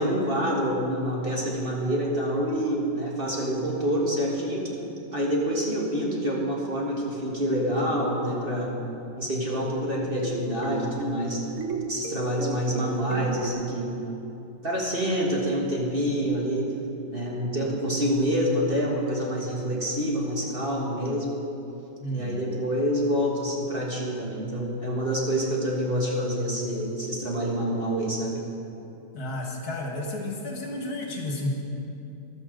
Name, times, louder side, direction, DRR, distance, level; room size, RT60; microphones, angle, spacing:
voice 1, 0.0-4.7 5.1-8.7 9.2-11.4 11.9-13.9 14.6-16.7 17.1-21.3 22.1-28.4, equal, 30° right, -4 dB, 1.8 m, -27 dB
sound 1, 9.9-13.5, right 3 dB, 50° right, 1.2 m, -35 dB
voice 2, 22.0-22.5 29.1-31.6, left 1 dB, 55° left, 0 dB, 2.0 m, -31 dB
14.5 x 12.0 x 5.1 m, 2.9 s
omnidirectional pair, 2.0 m